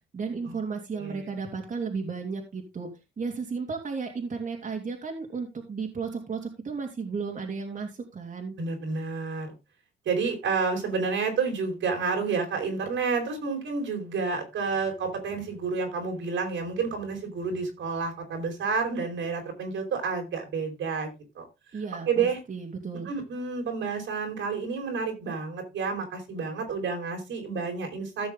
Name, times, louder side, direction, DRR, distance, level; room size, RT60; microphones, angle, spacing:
voice 1, 0.1-2.9 3.2-8.5 21.7-23.1, right 5 dB, 40° right, 1 dB, 3.0 m, -34 dB
voice 2, 8.6-9.5 10.0-21.4 22.1-22.4 23.0-28.3, right 5 dB, 75° right, 3 dB, 4.6 m, -30 dB
16.0 x 6.3 x 3.6 m, 0.26 s
cardioid pair, 90°, 20 cm